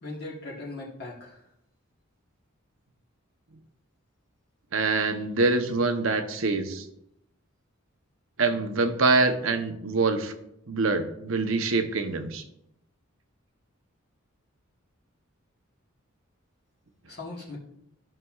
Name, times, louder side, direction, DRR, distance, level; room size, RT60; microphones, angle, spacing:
voice 1, 0.0-1.4 17.1-17.6, left 2 dB, 50° left, -5 dB, 1.4 m, -39 dB
voice 2, 4.7-6.8 8.4-10.3 10.7-12.4, right 3 dB, 70° right, 7 dB, 0.8 m, -25 dB
14.0 x 5.8 x 2.4 m, 0.79 s
head